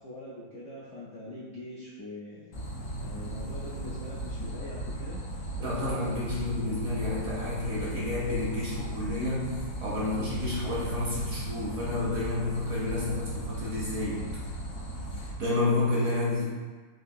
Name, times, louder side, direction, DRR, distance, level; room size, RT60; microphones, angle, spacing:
voice 1, 0.0-2.4 3.0-5.3, left 1 dB, 70° left, -7 dB, 0.7 m, -42 dB
sound 1, 2.5-15.3, right 1 dB, 90° left, 1.5 m, -36 dB
voice 2, 5.6-14.4 15.1-16.4, left 2 dB, 65° right, -6 dB, 0.9 m, -30 dB
4.6 x 2.6 x 2.6 m, 1.4 s
omnidirectional pair, 2.0 m